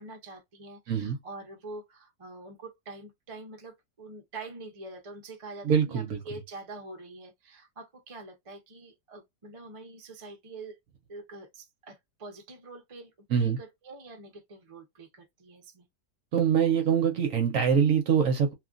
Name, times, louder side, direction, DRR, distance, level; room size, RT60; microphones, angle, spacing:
voice 1, 0.0-10.8 11.1-13.1 13.4-15.9, right 3 dB, 35° right, 0.5 m, -45 dB
voice 2, 5.6-6.2 13.3-13.6 16.3-18.5, right 7 dB, 60° right, 1.0 m, -24 dB
3.1 x 2.4 x 2.4 m
omnidirectional pair, 1.8 m